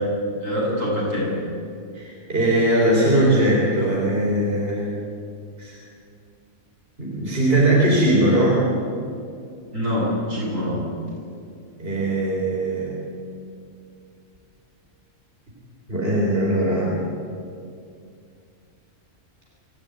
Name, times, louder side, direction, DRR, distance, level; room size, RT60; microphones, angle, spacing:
voice 1, 0.4-1.3 9.7-10.8, equal, 75° right, -4 dB, 8.3 m, -24 dB
voice 2, 1.9-4.8 5.6-5.8 7.0-8.6 11.8-13.0 15.9-17.0, right 1 dB, 45° right, -4 dB, 4.4 m, -20 dB
26.5 x 15.5 x 9.6 m, 2.4 s
omnidirectional pair, 1.4 m